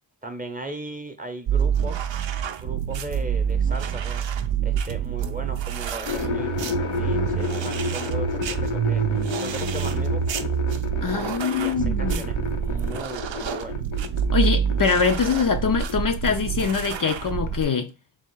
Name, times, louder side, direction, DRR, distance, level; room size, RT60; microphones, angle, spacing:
voice 1, 0.2-2.1 2.6-4.3 4.6-9.0 9.4-10.5 11.5-13.8, right 2 dB, 20° right, 0.8 m, -37 dB
sound 1, 1.5-17.7, right 8 dB, 70° right, 0.5 m, -27 dB
sound 2, 6.0-15.0 15.2-15.9, left 5 dB, 90° left, 0.8 m, -31 dB
voice 2, 11.0-12.3 14.3-17.9, left 6 dB, 45° left, 0.5 m, -23 dB
3.6 x 2.4 x 4.5 m
cardioid pair, 55°, 46 cm